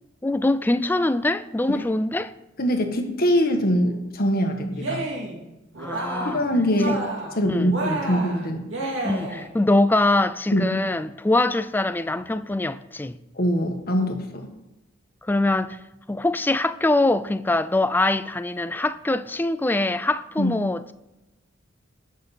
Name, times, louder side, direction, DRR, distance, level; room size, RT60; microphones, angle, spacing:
voice 1, 0.2-2.3 5.8-6.4 6.9-7.0 7.5-7.8 9.0-13.2 15.2-15.8 16.1-20.9, left 2 dB, 10° left, 0.4 m, -23 dB
voice 2, 2.6-5.1 6.2-7.0 7.4-8.7 10.5-10.6 13.4-14.5 20.4-20.5, equal, 50° left, 1.5 m, -23 dB
Cheering, 4.7-5.4 5.7-6.4 6.7-7.4 7.7-9.5, right 2 dB, 70° right, 2.5 m, -30 dB
18.0 x 6.5 x 4.2 m
head